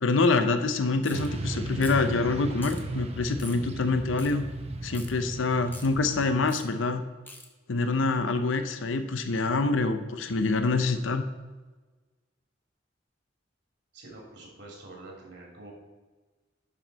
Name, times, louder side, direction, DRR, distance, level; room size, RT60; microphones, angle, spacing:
voice 1, 0.0-4.4 4.8-7.0 7.7-11.3, left 3 dB, 90° left, 9 dB, 0.7 m, -26 dB
sound 1, 1.0-1.3 1.8-2.1 2.6-2.8 3.4-3.6 4.2-4.3 4.9-5.1 5.7-5.9 6.5-6.6 7.3-7.5, left 2 dB, 10° left, 1.0 m, -44 dB
Motorcycle / Traffic noise roadway noise, 1.1-6.4, right 2 dB, 35° right, 0.8 m, -35 dB
voice 2, 13.9-15.7, right 2 dB, 65° right, -1 dB, 2.8 m, -46 dB
11.0 x 6.1 x 4.0 m, 1.3 s
head